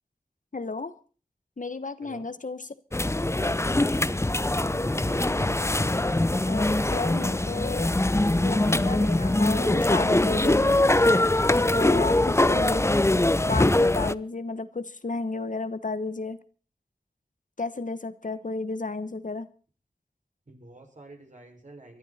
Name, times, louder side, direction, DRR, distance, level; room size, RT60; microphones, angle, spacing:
voice 1, 0.5-0.9 1.6-2.6 6.5-7.9 8.4-10.7 11.7-12.8 13.5-16.4 17.6-19.5, left 3 dB, 60° left, 13 dB, 1.2 m, -32 dB
sound 1, 2.9-14.1, left 1 dB, 20° left, 0.6 m, -23 dB
voice 2, 4.6-5.4 20.5-22.0, right 1 dB, 60° right, 2 dB, 6.0 m, -47 dB
24.5 x 12.0 x 4.3 m, 0.40 s
wide cardioid pair, 60°, 15 cm